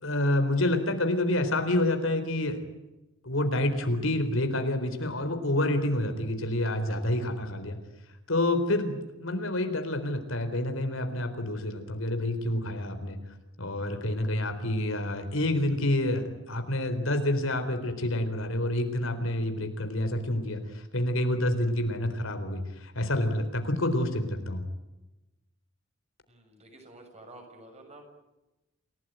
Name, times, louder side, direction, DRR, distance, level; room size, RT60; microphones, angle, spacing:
voice 1, 0.0-2.6 3.2-7.8 8.3-13.2 13.6-24.6, left 1 dB, 75° left, 7 dB, 4.1 m, -28 dB
voice 2, 26.3-28.0, right 2 dB, 30° right, 4 dB, 6.8 m, -50 dB
28.5 x 18.0 x 9.2 m, 1.0 s
head